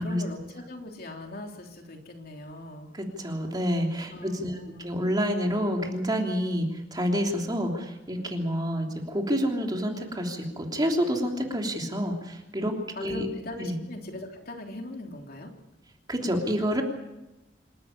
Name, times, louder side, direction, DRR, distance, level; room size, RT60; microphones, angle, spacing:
voice 1, 0.0-2.9 4.1-4.9 12.9-15.5, left 1 dB, 55° left, 2 dB, 3.3 m, -40 dB
voice 2, 2.9-13.3 13.6-13.8 16.1-16.8, equal, 20° right, 2 dB, 3.2 m, -28 dB
27.5 x 13.0 x 9.8 m, 0.97 s
head